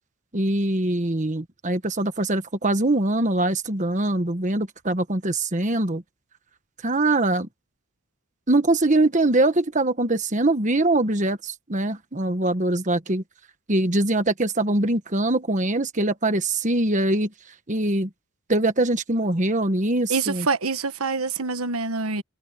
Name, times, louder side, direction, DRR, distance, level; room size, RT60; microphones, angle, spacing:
voice 1, 0.3-6.0 6.8-7.5 8.5-13.2 13.7-17.3 17.7-18.1 18.5-20.5, right 2 dB, 35° right, 1.4 m, -23 dB
voice 2, 20.1-22.2, right 4 dB, 85° right, 1.4 m, -26 dB
head